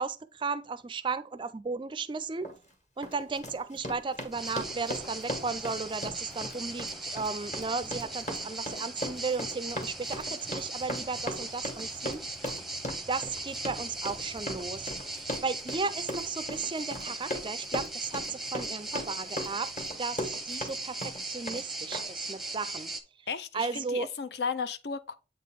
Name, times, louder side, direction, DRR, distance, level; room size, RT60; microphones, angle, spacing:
voice 1, 0.0-2.5 3.0-12.2 13.1-22.9 23.5-24.1, right 4 dB, 25° right, 0.4 m, -35 dB
Run, 2.4-2.6 3.0-20.7 21.0-21.6 21.9-22.0, equal, 40° left, 1.6 m, -38 dB
sound 1, 4.3-23.0, right 2 dB, ahead, 0.7 m, -38 dB
voice 2, 23.3-25.1, left 5 dB, 65° left, 0.6 m, -34 dB
8.1 x 3.7 x 3.6 m
head